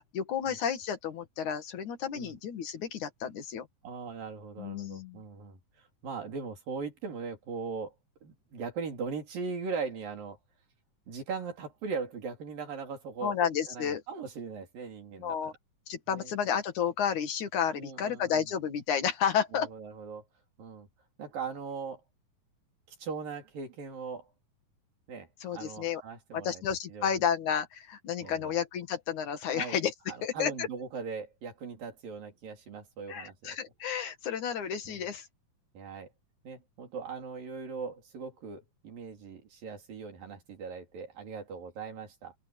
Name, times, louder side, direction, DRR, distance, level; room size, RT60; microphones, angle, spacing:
voice 1, 0.0-3.7 4.6-5.2 13.2-14.0 15.2-15.5 15.9-19.7 25.4-26.0 26.3-29.9 30.2-30.7 33.1-35.3, left 8 dB, 65° left, 3.2 m, -31 dB
voice 2, 3.8-7.9 8.2-10.4 11.1-13.3 13.7-15.4 16.1-16.3 17.7-18.4 19.5-20.2 20.6-20.9 21.2-22.0 22.9-24.3 25.1-26.6 26.9-27.2 28.2-28.6 29.5-29.8 30.1-33.6 34.9-35.0 35.7-36.1 36.4-42.3, right 5 dB, 90° right, 5.6 m, -39 dB
open air
omnidirectional pair, 3.9 m